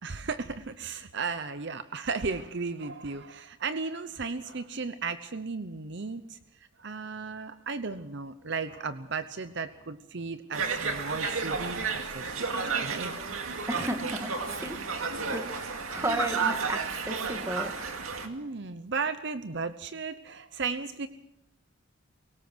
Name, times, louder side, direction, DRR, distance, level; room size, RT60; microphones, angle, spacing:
voice 1, 0.0-6.4 6.8-13.1 18.2-21.1, right 4 dB, 55° right, 11 dB, 0.8 m, -35 dB
Conversation, 10.5-18.3, right 4 dB, 80° right, 2.3 m, -32 dB
voice 2, 13.7-14.8 15.3-17.7, right 1 dB, 15° right, 6 dB, 1.7 m, -34 dB
23.0 x 18.5 x 6.2 m, 0.80 s
head